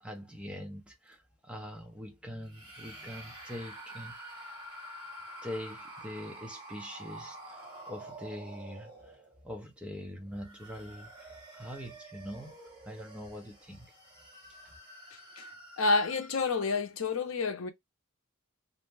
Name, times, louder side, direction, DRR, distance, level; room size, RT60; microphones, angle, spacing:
voice 1, 0.0-4.5 5.4-12.6 12.8-13.9 14.6-14.7, equal, 5° right, 0.6 m, -43 dB
sound 1, 2.4-9.5 10.2-16.7, right 1 dB, 20° right, 1.5 m, -48 dB
voice 2, 15.8-17.7, left 3 dB, 70° left, 0.6 m, -29 dB
2.6 x 2.1 x 3.2 m
head